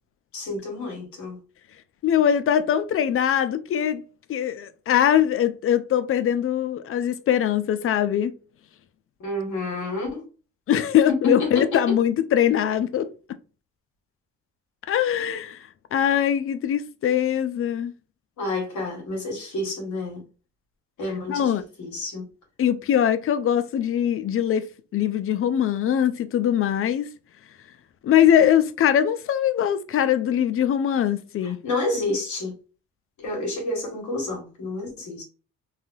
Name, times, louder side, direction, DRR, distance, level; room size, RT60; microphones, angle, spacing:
voice 1, 0.3-1.4 9.2-10.3 11.2-11.8 18.4-20.2 21.0-22.3 31.4-32.5 33.2-35.2, left 2 dB, 70° left, 1.5 m, -29 dB
voice 2, 2.0-4.0 4.3-8.3 10.7-13.1 14.9-17.9 21.3-21.6 22.6-24.7 24.9-27.1 28.0-31.6, left 10 dB, 45° left, 0.4 m, -22 dB
3.3 x 2.2 x 2.6 m
cardioid pair, 90°, 30 cm